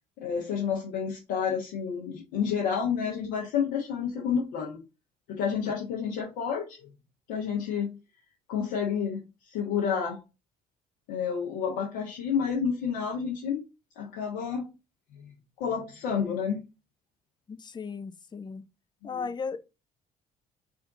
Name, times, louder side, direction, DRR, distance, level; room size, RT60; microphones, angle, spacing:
voice 1, 0.2-4.8 5.3-6.9 7.3-7.9 8.5-9.2 9.5-10.2 11.1-13.7 14.0-14.7 15.1-16.6 19.0-19.3, left 7 dB, 65° left, 0.9 m, -30 dB
voice 2, 17.5-18.6 19.0-19.6, left 5 dB, 20° left, 0.5 m, -36 dB
3.6 x 3.4 x 3.9 m
figure-of-eight pair, 50°, 20 cm